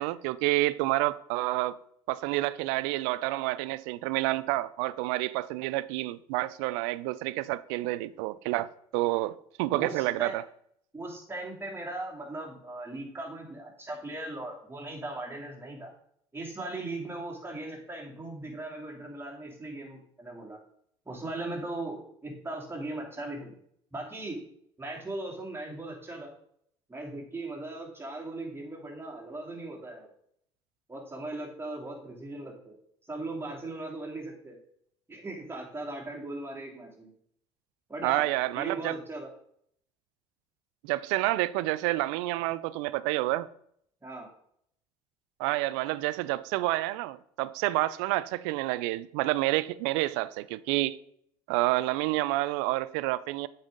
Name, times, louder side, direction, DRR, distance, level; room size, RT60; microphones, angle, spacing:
voice 1, 0.0-1.8 2.1-10.4 38.0-39.0 40.8-43.5 45.4-51.0 51.5-53.5, right 18 dB, 75° right, 0.4 m, -29 dB
voice 2, 9.8-10.3 10.9-15.9 16.3-20.6 21.0-23.5 23.9-24.4 24.8-26.3 26.9-30.1 30.9-32.7 33.0-34.6 35.1-37.1 37.9-38.3 38.5-39.3 44.0-44.3, right 2 dB, 15° right, 2.9 m, -38 dB
7.9 x 5.6 x 3.8 m
hypercardioid pair, 65°, 15 cm